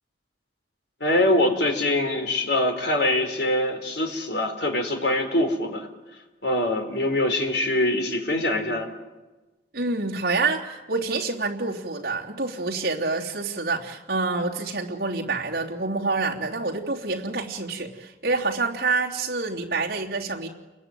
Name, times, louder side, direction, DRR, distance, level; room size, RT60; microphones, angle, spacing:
voice 1, 1.0-5.9 6.4-8.9, left 1 dB, 65° left, 5 dB, 4.0 m, -23 dB
voice 2, 9.7-20.5, right 3 dB, 55° right, -3 dB, 3.2 m, -27 dB
29.5 x 21.5 x 9.2 m, 1.2 s
head